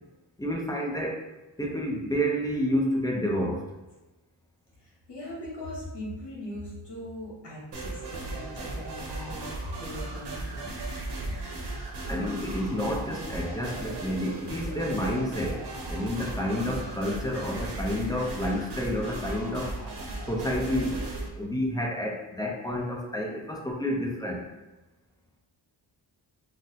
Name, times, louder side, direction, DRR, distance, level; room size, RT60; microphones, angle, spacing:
voice 1, 0.4-1.2 1.6-3.7 12.1-19.7 20.2-21.0 21.4-24.4, equal, 10° left, -1 dB, 0.5 m, -29 dB
voice 2, 4.8-9.5 9.8-10.8 11.1-11.4, left 1 dB, 65° left, -4 dB, 1.2 m, -40 dB
sound 1, 7.7-21.3, right 2 dB, 65° right, 0.9 m, -36 dB
3.8 x 2.1 x 2.7 m, 1.1 s
wide cardioid pair, 100°, 44 cm